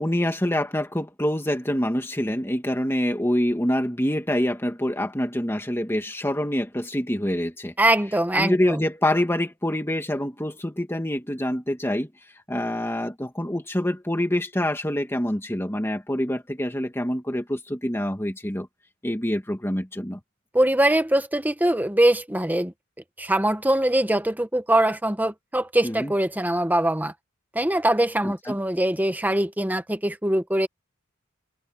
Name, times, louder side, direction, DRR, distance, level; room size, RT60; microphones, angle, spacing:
voice 1, 0.0-7.7 8.3-12.1 12.5-18.7 19.0-20.2 25.8-26.1 28.2-28.6, left 1 dB, 10° left, 1.9 m, -26 dB
voice 2, 7.8-8.8 20.5-22.7 23.2-27.1 27.5-30.7, right 1 dB, 10° right, 1.1 m, -22 dB
head